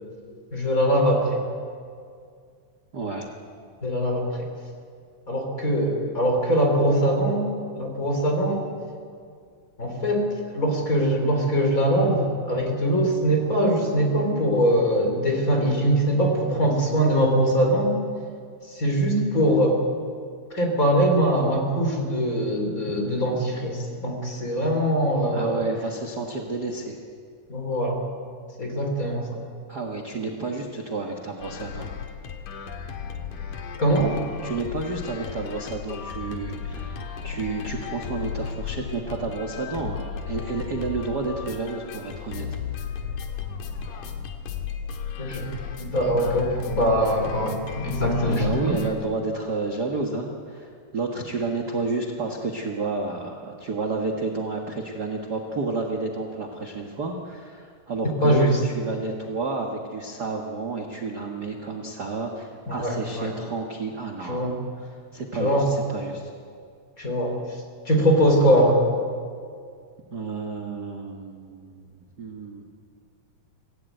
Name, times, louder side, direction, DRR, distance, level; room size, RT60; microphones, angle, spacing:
voice 1, 0.5-1.4 3.8-4.5 5.3-7.5 7.7-8.7 9.8-17.9 18.7-19.8 20.5-25.7 27.5-28.0 28.6-29.4 33.8-34.1 45.2-45.5 45.8-48.5 58.2-58.6 62.7-63.3 64.2-64.5 65.4-65.7 67.0-67.3 67.9-68.8, equal, 25° left, 2 dB, 3.7 m, -22 dB
voice 2, 2.9-3.3 25.3-27.0 29.7-31.9 34.4-37.0 37.2-42.5 48.2-64.5 64.8-66.3 70.1-72.6, right 3 dB, 40° right, 1 dB, 1.6 m, -31 dB
sound 1, 31.4-48.9, left 7 dB, 75° left, 3.2 m, -35 dB
25.5 x 16.0 x 9.2 m, 2.2 s
omnidirectional pair, 3.7 m